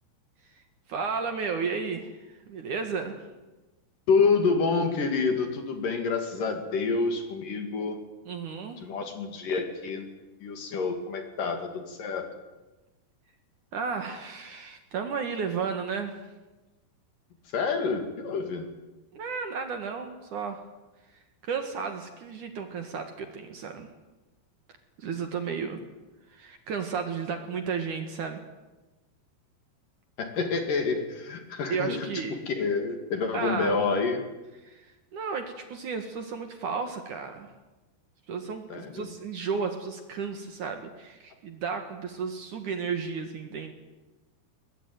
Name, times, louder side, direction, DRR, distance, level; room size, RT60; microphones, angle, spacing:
voice 1, 0.9-3.2 8.3-8.8 13.7-16.2 19.1-20.6 21.4-23.9 25.0-25.8 26.3-28.4 31.7-32.4 33.3-33.8 34.6-37.5 38.3-43.7, right 5 dB, 55° right, 6 dB, 2.8 m, -33 dB
voice 2, 4.1-8.0 8.8-10.1 10.4-12.3 17.5-18.7 30.2-34.2 38.7-39.1, left 4 dB, 55° left, 6 dB, 3.6 m, -28 dB
22.0 x 20.5 x 9.5 m, 1.1 s
omnidirectional pair, 5.0 m